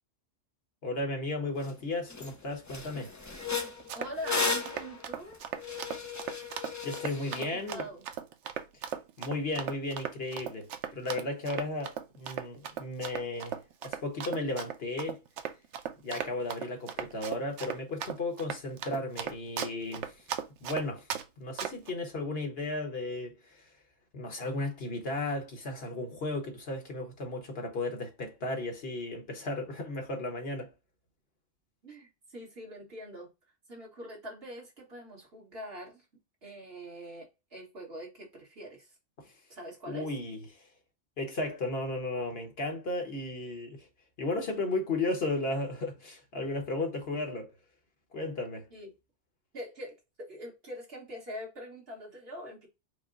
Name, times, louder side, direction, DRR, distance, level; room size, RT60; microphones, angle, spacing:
voice 1, 0.8-3.1 6.8-7.9 9.2-15.2 16.0-20.2 20.6-21.1 21.4-23.7 24.1-30.7 39.2-39.3 39.9-40.7 41.2-43.9 44.2-47.5 48.1-48.7, left 2 dB, 60° left, 1.2 m, -34 dB
sound 1, 1.6-1.7 2.1-2.3 2.7-7.4, left 4 dB, 25° left, 0.4 m, -35 dB
Run, 3.7-21.2 21.6-21.9, right 8 dB, 90° right, 0.9 m, -37 dB
voice 2, 3.9-5.4 7.3-8.1 31.8-33.3 33.7-36.0 36.4-38.9 39.5-40.1 48.7-48.9 49.5-52.7, equal, 55° right, 1.8 m, -43 dB
5.1 x 2.2 x 3.7 m
omnidirectional pair, 1.2 m